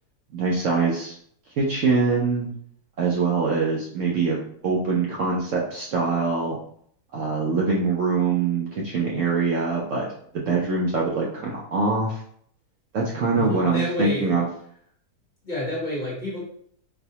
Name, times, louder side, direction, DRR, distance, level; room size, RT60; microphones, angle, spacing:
voice 1, 0.3-1.1 1.6-2.5 3.0-6.6 7.1-10.1 10.3-12.2 12.9-14.4, right 4 dB, 65° right, -3 dB, 0.8 m, -23 dB
voice 2, 13.3-14.3 15.4-16.4, left 1 dB, 35° left, -6 dB, 0.9 m, -29 dB
4.1 x 2.2 x 2.7 m, 0.64 s
omnidirectional pair, 1.7 m